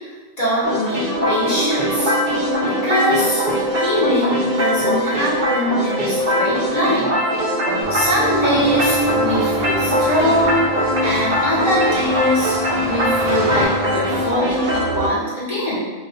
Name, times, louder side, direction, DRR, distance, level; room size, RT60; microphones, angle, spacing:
voice 1, 0.4-2.1 2.6-3.4 3.7-7.2 7.6-10.6 11.0-12.5 12.8-15.8, equal, 50° left, -9 dB, 0.5 m, -22 dB
sound 1, 0.6-15.1, equal, 75° right, 0.4 m, -21 dB
sound 2, 7.8-14.3, left 1 dB, 80° left, 1.0 m, -32 dB
sound 3, 7.9-13.7, right 1 dB, 15° left, 0.9 m, -32 dB
2.4 x 2.2 x 2.5 m, 1.3 s
omnidirectional pair, 1.4 m